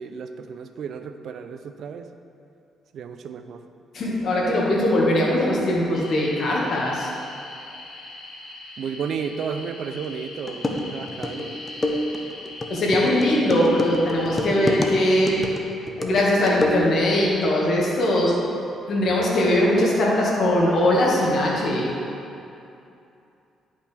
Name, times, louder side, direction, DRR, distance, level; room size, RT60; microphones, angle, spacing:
voice 1, 0.0-2.1 2.9-3.6 8.8-11.6, right 6 dB, 65° right, 8 dB, 0.4 m, -33 dB
voice 2, 3.9-7.1 12.7-15.3 16.0-18.3 18.9-21.9, left 1 dB, 60° left, -4 dB, 1.7 m, -21 dB
sound 1, 5.9-15.4, left 2 dB, 75° left, 1.2 m, -40 dB
sound 2, 10.1-10.2 10.5-17.2, left 1 dB, 25° left, 0.7 m, -27 dB
10.5 x 5.3 x 3.4 m, 2.7 s
cardioid pair, 90°, 0 cm